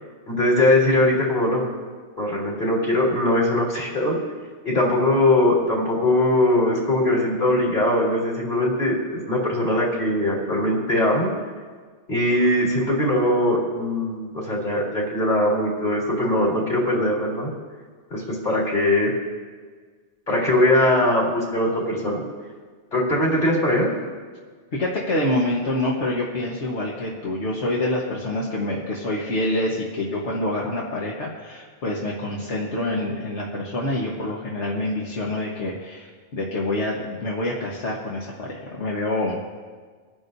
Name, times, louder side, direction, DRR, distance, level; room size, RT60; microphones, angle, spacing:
voice 1, 0.3-1.7 2.2-4.2 4.6-11.3 12.1-17.5 18.1-19.1 20.3-22.2 22.9-23.9, left 1 dB, 45° left, -4 dB, 3.7 m, -21 dB
voice 2, 24.7-39.4, left 1 dB, 75° left, -4 dB, 1.6 m, -26 dB
26.0 x 10.5 x 2.7 m, 1.5 s
omnidirectional pair, 1.2 m